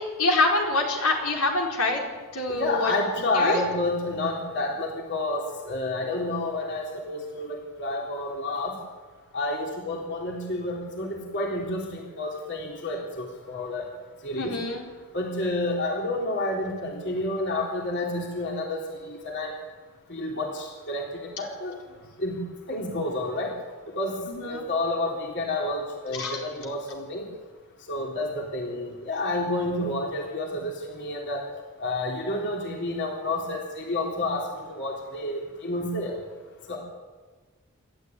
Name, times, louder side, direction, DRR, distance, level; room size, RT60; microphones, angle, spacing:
voice 1, 0.0-2.9 3.3-3.6 14.4-14.9 24.3-24.6 26.1-26.4, left 2 dB, 75° left, 0 dB, 4.4 m, -26 dB
voice 2, 2.5-8.7 9.3-13.8 14.2-14.5 15.1-19.5 20.1-21.8 22.2-23.5 23.9-24.1 24.4-27.3 27.9-31.4 31.8-34.4 34.7-36.2 36.7-36.8, left 2 dB, 50° left, -1 dB, 3.6 m, -29 dB
28.0 x 13.0 x 9.3 m, 1.4 s
head